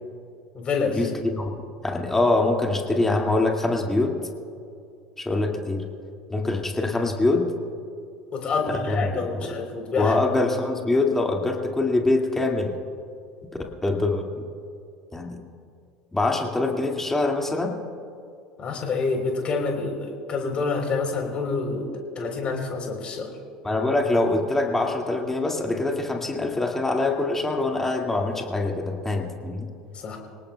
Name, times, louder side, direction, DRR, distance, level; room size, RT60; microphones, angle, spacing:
voice 1, 0.5-1.0 8.3-10.2 18.6-21.9 22.2-23.3 29.9-30.2, left 4 dB, 35° left, 2 dB, 3.8 m, -27 dB
voice 2, 1.8-4.2 5.2-5.8 6.3-7.5 8.6-9.5 10.0-12.7 13.8-14.3 15.1-15.4 16.1-17.8 23.6-29.7, left 2 dB, 10° left, 1 dB, 2.2 m, -24 dB
26.5 x 18.5 x 2.3 m, 2.5 s
figure-of-eight pair, 65°, 3 cm